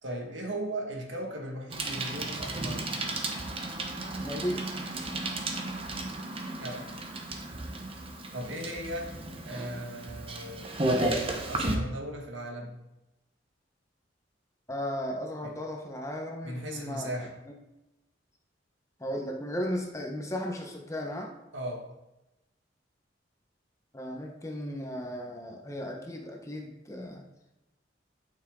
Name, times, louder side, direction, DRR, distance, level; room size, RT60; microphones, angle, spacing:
voice 1, 0.0-2.8 6.5-6.9 8.3-9.1 9.4-10.8 11.4-12.8 15.4-15.6 16.4-17.4 21.5-21.9, right 1 dB, 80° right, 0 dB, 1.9 m, -37 dB
Bicycle, 1.7-11.8, right 2 dB, 30° right, 1.1 m, -33 dB
voice 2, 4.2-4.7 14.7-17.6 19.0-21.3 23.9-27.2, equal, 15° left, 1 dB, 1.2 m, -35 dB
11.0 x 6.2 x 3.8 m, 0.95 s
head